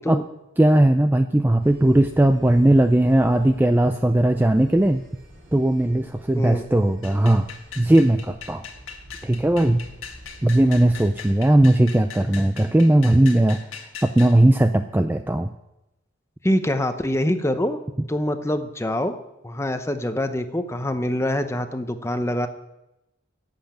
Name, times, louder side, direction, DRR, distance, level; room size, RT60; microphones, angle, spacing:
voice 1, 0.6-5.0 5.5-7.5 7.8-8.6 9.2-9.8 10.4-13.7 14.0-15.5, right 1 dB, 10° right, 7 dB, 0.3 m, -18 dB
sound 1, 1.6-11.3, right 1 dB, 55° right, 4.9 m, -48 dB
voice 2, 6.3-6.6 16.4-17.8 18.1-19.1 19.4-22.5, left 1 dB, 15° left, 8 dB, 0.7 m, -24 dB
sound 2, 7.0-14.4, left 7 dB, 85° left, 1.6 m, -40 dB
10.5 x 8.0 x 8.7 m, 0.93 s
head